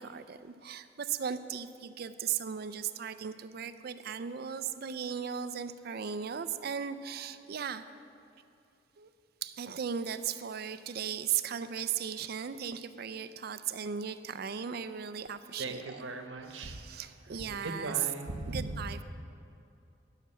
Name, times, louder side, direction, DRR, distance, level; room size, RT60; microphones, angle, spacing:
voice 1, 0.0-7.9 9.0-9.1 9.4-15.8 16.5-17.9 18.5-19.0, right 7 dB, 55° right, 12 dB, 0.4 m, -37 dB
voice 2, 15.6-17.0 17.3-18.9, right 2 dB, 80° right, 6 dB, 1.0 m, -39 dB
12.0 x 5.8 x 7.2 m, 2.6 s
head